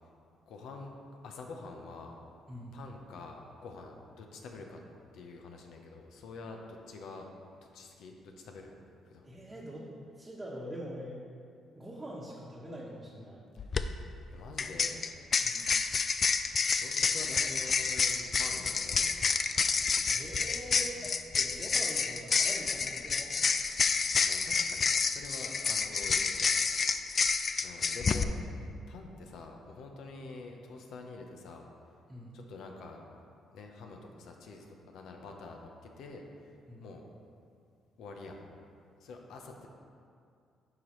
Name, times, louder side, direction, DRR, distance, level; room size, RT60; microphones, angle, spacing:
voice 1, 0.5-0.9 1.2-2.2 2.7-4.8 5.1-7.3 7.7-8.7 9.0-9.3 13.6-13.7 14.3-15.1 16.7-19.1 20.7-21.2 24.2-26.5 27.6-31.7 32.3-33.0 33.5-35.7 36.0-36.5 36.8-37.0 38.0-38.4 38.8-39.7, left 3 dB, 80° left, 2 dB, 0.7 m, -47 dB
voice 2, 9.2-9.9 10.2-11.2 11.8-13.4 15.4-15.7 20.1-21.0 21.3-23.3 32.1-32.3 36.7-36.9, equal, 15° right, -6 dB, 1.1 m, -44 dB
sound 1, 13.6-13.8 14.6-28.2, left 5 dB, 45° left, 0.3 m, -29 dB
9.3 x 5.0 x 3.1 m, 2.4 s
cardioid pair, 90°, 0 cm